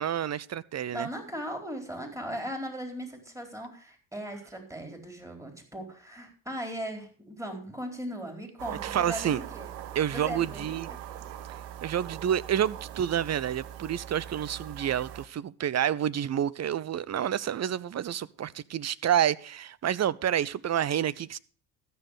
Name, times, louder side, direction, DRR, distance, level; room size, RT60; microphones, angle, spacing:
voice 1, 0.0-1.1 8.8-9.4 9.9-10.9 11.8-21.4, right 10 dB, 35° right, 0.7 m, -29 dB
voice 2, 0.9-9.7 10.1-11.0, equal, 5° right, 4.3 m, -38 dB
sound 1, 8.6-15.3, right 10 dB, 85° right, 0.9 m, -41 dB
13.5 x 6.8 x 6.6 m
hypercardioid pair, 60°, 47 cm